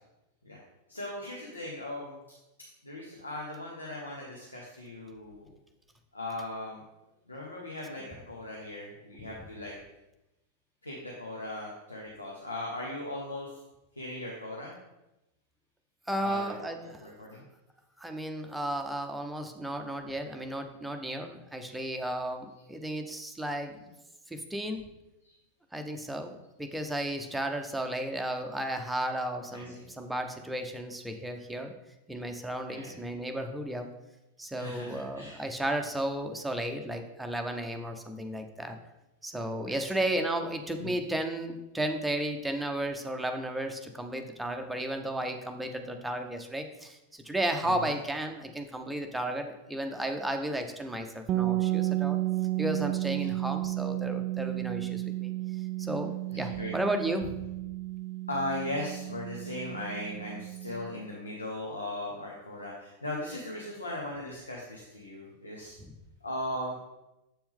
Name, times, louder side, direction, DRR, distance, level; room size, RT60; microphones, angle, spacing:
voice 1, 0.9-2.1 2.8-5.5 6.1-6.8 7.3-9.7 10.8-13.6 13.9-14.7 16.2-17.4 27.7-27.8 29.5-29.8 32.7-33.0 34.5-35.4 39.6-40.0 40.8-40.9 47.6-48.0 56.3-56.8 58.3-65.7 66.2-66.7, left 1 dB, 80° left, -2 dB, 1.1 m, -38 dB
voice 2, 16.1-17.1 18.0-23.8 24.3-24.8 25.7-26.3 26.6-31.7 32.1-33.9 34.4-38.8 39.2-52.2 52.6-55.3 55.8-57.4 65.8-65.9, right 1 dB, 5° right, 4 dB, 0.7 m, -34 dB
sound 1, 51.3-61.0, right 16 dB, 35° right, 0.4 m, -32 dB
7.6 x 4.3 x 3.7 m, 0.97 s
figure-of-eight pair, 90°, 0 cm